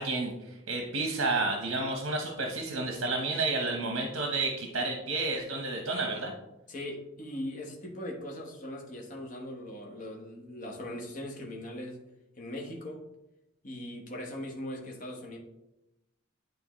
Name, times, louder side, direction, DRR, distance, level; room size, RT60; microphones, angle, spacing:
voice 1, 0.0-6.3, right 3 dB, 65° right, 2 dB, 0.9 m, -31 dB
voice 2, 6.7-12.0 12.4-13.0 13.6-15.4, left 1 dB, 40° left, -1 dB, 1.1 m, -40 dB
9.9 x 3.8 x 3.0 m, 0.93 s
head